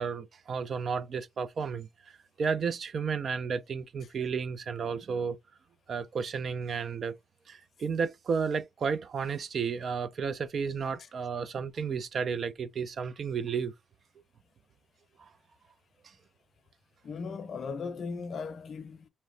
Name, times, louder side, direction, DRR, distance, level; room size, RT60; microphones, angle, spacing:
voice 1, 0.0-1.9 2.4-5.4 5.9-7.2 7.5-13.7 15.2-15.3, right 6 dB, 50° right, 0.4 m, -32 dB
voice 2, 17.0-19.1, left 5 dB, 50° left, 0.6 m, -37 dB
2.9 x 2.1 x 3.8 m
cardioid pair, 90°, 0 cm